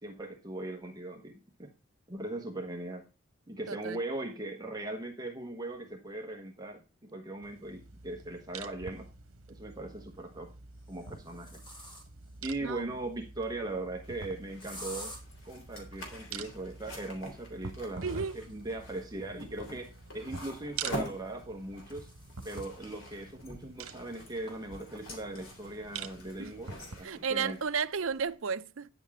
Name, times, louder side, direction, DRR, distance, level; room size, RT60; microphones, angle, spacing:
voice 1, 0.0-1.7 2.1-3.0 3.5-9.1 9.5-10.5 10.9-11.6 12.4-15.1 15.4-22.1 22.4-27.6, right 2 dB, 20° right, 1.2 m, -39 dB
voice 2, 3.7-4.0 12.6-12.9 18.0-18.4 26.4-26.5 27.0-28.9, right 6 dB, 65° right, 0.6 m, -33 dB
sound 1, 7.4-27.0, right 5 dB, 85° right, 1.1 m, -47 dB
sound 2, 8.2-8.3 9.8-10.2 10.8-12.4 14.6-15.2 17.8-20.4 21.4-22.8 23.2-23.3 23.7-23.8 24.5-24.6 24.9-25.3, equal, 20° left, 2.7 m, -50 dB
sound 3, 14.0-28.3, left 1 dB, 65° left, 3.4 m, -47 dB
10.0 x 8.1 x 3.6 m
head